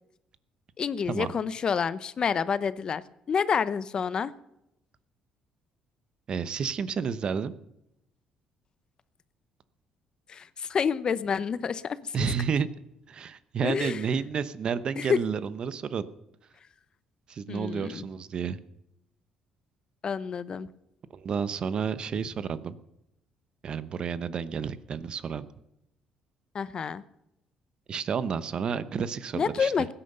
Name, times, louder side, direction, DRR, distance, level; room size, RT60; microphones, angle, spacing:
voice 1, 0.8-4.3 10.3-12.3 13.6-14.0 15.0-15.2 17.5-18.1 20.0-20.7 26.5-27.0 29.3-29.9, left 6 dB, 45° left, 16 dB, 0.8 m, -28 dB
voice 2, 6.3-7.5 12.1-12.7 13.1-16.1 17.3-18.6 21.1-22.8 23.6-25.5 27.9-29.7, right 6 dB, 50° right, 15 dB, 0.9 m, -30 dB
16.0 x 10.0 x 6.8 m, 0.84 s
cardioid pair, 85°, 2 cm